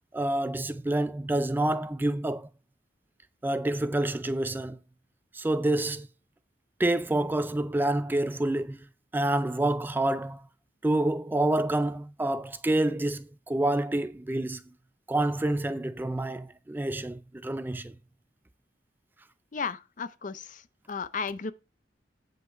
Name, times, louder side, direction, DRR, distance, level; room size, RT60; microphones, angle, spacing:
voice 1, 0.1-2.5 3.4-4.8 5.3-6.1 6.8-10.5 10.8-14.6 15.1-18.0, right 1 dB, 10° right, 0.3 m, -28 dB
voice 2, 19.5-20.6 20.9-21.5, left 5 dB, 45° left, 0.5 m, -34 dB
8.3 x 5.5 x 4.5 m
head